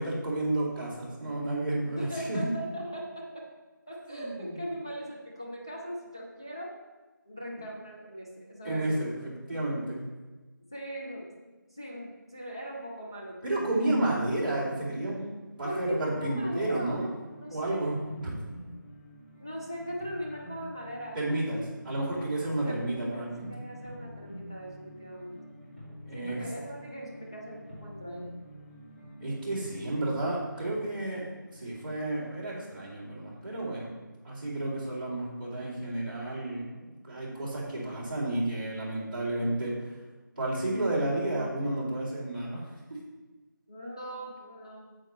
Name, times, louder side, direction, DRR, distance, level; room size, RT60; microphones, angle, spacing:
voice 1, 0.0-2.5 4.1-4.6 8.6-10.0 13.4-15.2 15.6-17.1 17.5-18.3 21.1-23.5 26.0-26.4 29.2-31.2 31.5-33.9 34.2-40.0 40.4-42.7, right 1 dB, 25° right, -9 dB, 2.5 m, -31 dB
voice 2, 2.0-3.5 3.9-6.8 7.3-9.0 9.5-9.6 10.7-11.3 11.7-13.7 15.6-17.0 17.4-17.8 19.4-21.2 22.4-25.4 26.1-28.3 43.7-44.9, equal, 15° left, -3 dB, 0.4 m, -39 dB
sound 1, 14.5-33.7, equal, 30° left, 2.5 m, -48 dB
8.7 x 8.0 x 3.0 m, 1.2 s
figure-of-eight pair, 170°, 11 cm